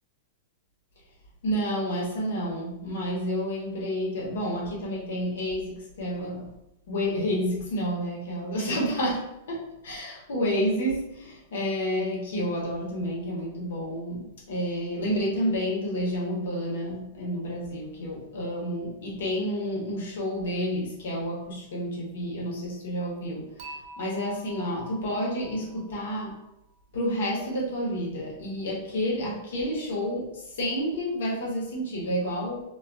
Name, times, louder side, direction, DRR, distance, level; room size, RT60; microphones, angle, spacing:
voice 1, 1.4-6.5 6.9-26.4 26.9-32.7, equal, 75° left, -3 dB, 1.0 m, -30 dB
Dishes pots and pans / Chink clink, 23.6-26.7, right 1 dB, 60° right, 0.6 m, -46 dB
2.4 x 2.3 x 2.5 m, 0.88 s
hypercardioid pair, 120°, 0 cm